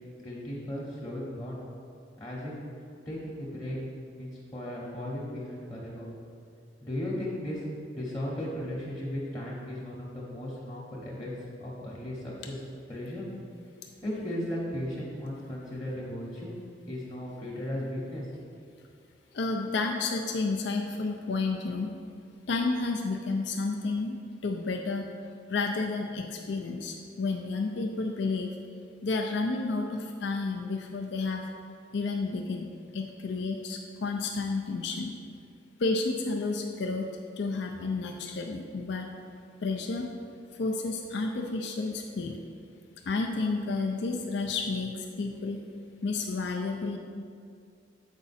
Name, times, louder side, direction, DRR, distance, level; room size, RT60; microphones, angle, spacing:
voice 1, 0.2-1.6 2.2-2.5 3.1-3.8 4.1-6.1 6.8-7.6 7.9-11.3 11.6-12.6 12.9-13.3 14.0-16.5 16.9-18.3, left 1 dB, 20° left, -7 dB, 1.0 m, -36 dB
voice 2, 19.3-22.0 22.5-24.1 24.4-25.1 25.5-28.6 29.0-31.4 31.9-32.7 32.9-35.1 35.8-37.1 37.4-39.1 39.6-40.1 40.6-42.4 43.1-45.6 46.0-47.0, left 3 dB, 65° left, 2 dB, 0.5 m, -31 dB
7.1 x 4.8 x 4.2 m, 2.3 s
head